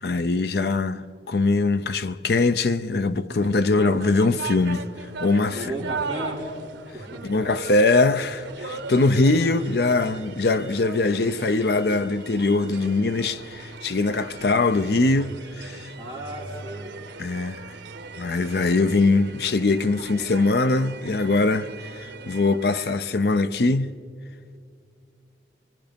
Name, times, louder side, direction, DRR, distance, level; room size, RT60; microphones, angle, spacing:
voice 1, 0.0-4.8 5.2-5.9 7.2-15.9 17.2-17.6 18.2-21.7 21.9-23.9, left 3 dB, 60° left, 0.6 m, -22 dB
sound 1, 3.4-23.2, right 4 dB, 85° right, 0.9 m, -39 dB
voice 2, 5.5-6.5 6.9-7.3 16.0-16.9, right 1 dB, 30° left, 3.1 m, -34 dB
24.0 x 24.0 x 5.2 m
head